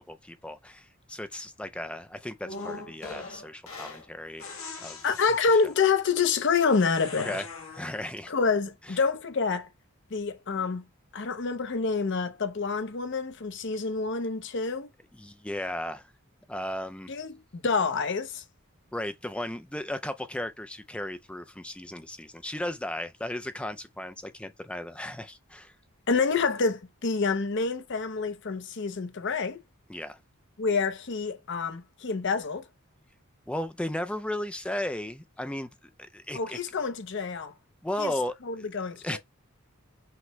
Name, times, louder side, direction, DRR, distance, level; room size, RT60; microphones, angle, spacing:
voice 1, 0.1-4.5 4.8-5.0 7.1-7.5 7.7-8.3 8.9-9.0 15.1-16.1 16.5-17.1 18.9-25.7 29.9-30.2 33.5-35.7 36.1-36.6 37.8-38.7 39.0-39.2, left 1 dB, 5° left, 0.3 m, -35 dB
sound 1, 2.5-4.1 4.4-5.9 6.7-8.1, left 3 dB, 75° left, 1.2 m, -41 dB
voice 2, 5.0-7.4 8.3-9.7 10.1-10.8 11.1-14.9 17.1-18.4 26.1-29.6 30.6-32.6 36.3-37.5 38.0-38.1 38.5-39.2, left 4 dB, 60° left, 0.7 m, -27 dB
5.9 x 2.1 x 3.1 m
head